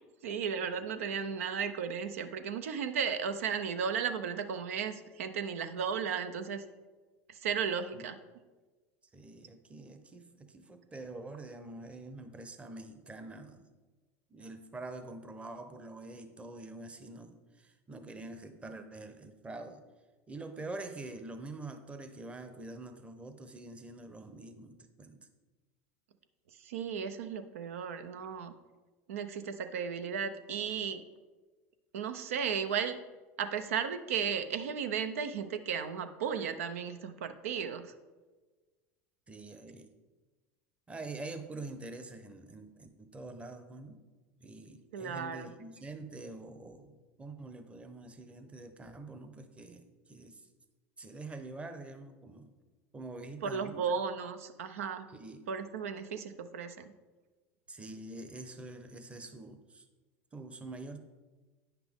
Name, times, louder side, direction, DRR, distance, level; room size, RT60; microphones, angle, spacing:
voice 1, 0.0-6.6 7.3-8.2 26.6-28.5 29.1-31.0 31.9-33.0 33.4-37.9 44.9-45.5 53.4-55.1 55.5-56.9, right 7 dB, 85° right, 10 dB, 0.6 m, -35 dB
voice 2, 9.1-13.7 14.3-19.8 20.3-25.3 39.3-39.9 40.9-44.0 44.4-50.4 51.0-52.5 52.9-53.9 55.1-55.4 57.7-59.9 60.3-61.0, right 2 dB, 15° right, 8 dB, 0.8 m, -45 dB
9.1 x 5.9 x 3.6 m, 1.3 s
hypercardioid pair, 95°, 7 cm